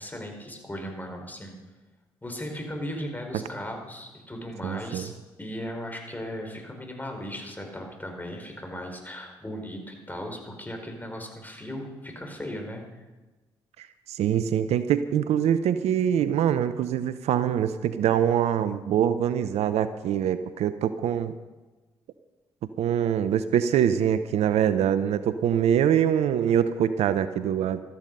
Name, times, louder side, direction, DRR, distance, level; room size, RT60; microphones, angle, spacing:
voice 1, 0.0-1.6 2.2-5.1 5.4-13.1, equal, 15° left, 3 dB, 4.9 m, -37 dB
voice 2, 4.6-5.1 13.8-21.3 22.8-27.8, right 9 dB, 70° right, 13 dB, 0.7 m, -24 dB
15.0 x 13.5 x 5.4 m, 1.2 s
hypercardioid pair, 45°, 11 cm